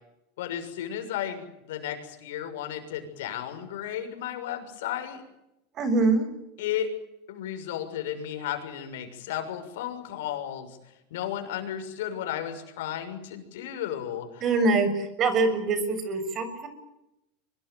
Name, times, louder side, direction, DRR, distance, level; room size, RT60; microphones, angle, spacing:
voice 1, 0.4-5.2 6.6-6.9 7.3-10.8 11.1-14.4, left 10 dB, 80° left, 7 dB, 6.4 m, -34 dB
voice 2, 5.7-6.3 14.4-16.7, right 3 dB, 35° right, 11 dB, 6.7 m, -24 dB
24.5 x 21.0 x 9.3 m, 0.87 s
supercardioid pair, 130°, 0 cm